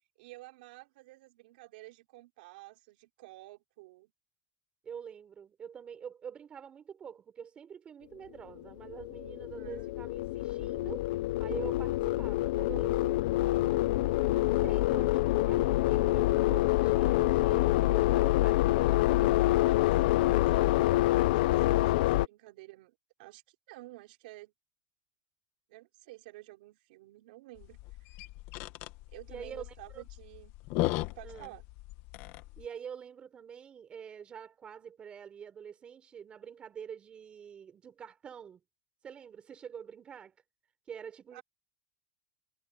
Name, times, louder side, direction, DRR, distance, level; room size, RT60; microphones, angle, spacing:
voice 1, 0.2-4.1 9.6-9.8 15.0-15.1 18.3-18.4 19.5-24.5 25.7-28.3 29.1-30.5 31.1-31.6 41.3-41.4, right 20 dB, 70° right, 4.4 m, -52 dB
voice 2, 4.8-11.0 11.4-13.3 14.3-18.6 29.3-29.6 29.9-30.0 31.2-31.6 32.6-38.6 39.0-40.3 40.9-41.4, right 7 dB, 20° right, 4.5 m, -46 dB
sound 1, 8.6-22.3, left 17 dB, 70° left, 0.5 m, -26 dB
sound 2, 27.6-32.7, left 19 dB, 45° left, 1.4 m, -37 dB
supercardioid pair, 160°, 5 cm